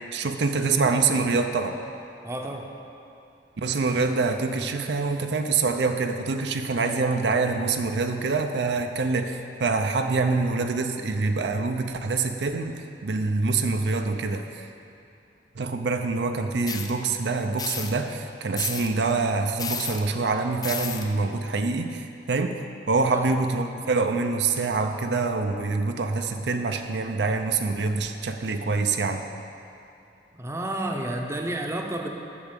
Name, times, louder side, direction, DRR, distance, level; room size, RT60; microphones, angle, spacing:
voice 1, 0.1-1.8 3.6-14.6 15.6-22.6 22.9-29.3, right 4 dB, 70° right, 6 dB, 0.5 m, -25 dB
voice 2, 2.2-2.7 23.1-23.3 30.3-32.1, right 1 dB, 15° right, 2 dB, 0.7 m, -30 dB
sound 1, 16.7-16.9 17.6-17.9 18.6-18.9 19.6-20.0 20.6-21.0, left 5 dB, 20° left, 0.5 m, -32 dB
8.5 x 6.0 x 7.3 m, 2.6 s
head